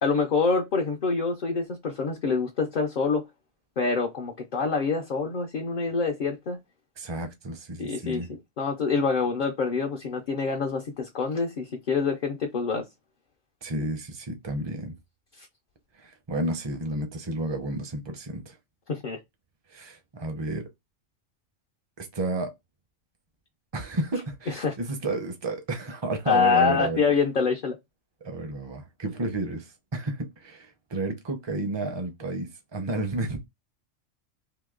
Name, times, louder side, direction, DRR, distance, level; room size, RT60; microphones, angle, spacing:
voice 1, 0.0-3.2 3.8-6.6 7.8-12.8 18.9-19.2 24.5-24.7 26.3-27.8, left 4 dB, 50° left, 0.7 m, -26 dB
voice 2, 7.0-8.3 13.6-15.0 16.0-18.6 19.7-20.7 22.0-22.5 23.7-27.0 28.2-33.4, right 2 dB, 30° right, 0.6 m, -31 dB
2.9 x 2.7 x 3.6 m
omnidirectional pair, 1.3 m